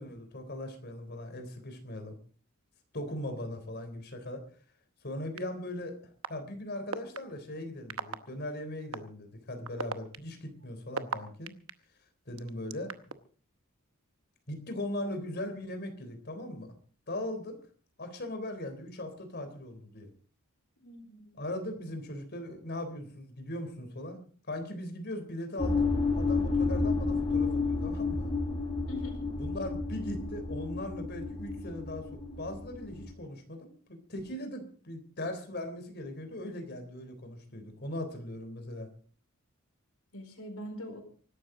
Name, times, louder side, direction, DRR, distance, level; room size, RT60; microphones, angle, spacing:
voice 1, 0.0-2.2 2.9-4.4 5.0-5.9 6.3-11.5 12.3-13.2 14.5-16.8 17.1-17.6 18.0-20.1 21.4-24.2 24.5-25.9 26.1-28.3 29.4-38.9, left 1 dB, 50° left, 7 dB, 3.6 m, -39 dB
sound 1, 5.4-5.5 6.2-6.3 6.9-7.2 7.9-8.2 8.9-9.0 9.6-11.7 12.4-13.1, right 5 dB, 65° right, 0.9 m, -34 dB
voice 2, 20.8-21.4 28.9-29.3 40.1-41.0, equal, 80° left, 5 dB, 4.4 m, -43 dB
sound 2, 25.6-33.1, left 3 dB, 25° left, 3.0 m, -31 dB
24.0 x 12.5 x 3.9 m, 0.42 s
head